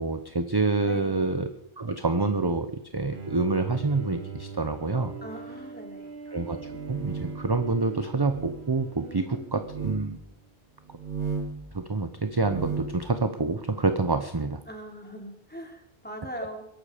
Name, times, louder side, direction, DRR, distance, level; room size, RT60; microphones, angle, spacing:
voice 1, 0.0-1.5 1.8-5.1 6.3-6.6 6.9-10.2 11.7-14.6, right 3 dB, 25° right, 9 dB, 0.8 m, -27 dB
voice 2, 0.8-1.2 5.2-6.1 9.0-9.5 14.7-16.6, equal, 10° left, 2 dB, 3.1 m, -41 dB
Bowed string instrument, 3.1-10.4, right 5 dB, 80° right, 1.6 m, -42 dB
sound 1, 6.5-7.5 8.2-8.6 9.6-10.0 10.9-11.6 12.3-13.0, right 5 dB, 50° right, 3.9 m, -34 dB
22.0 x 12.0 x 5.1 m, 0.74 s
omnidirectional pair, 1.1 m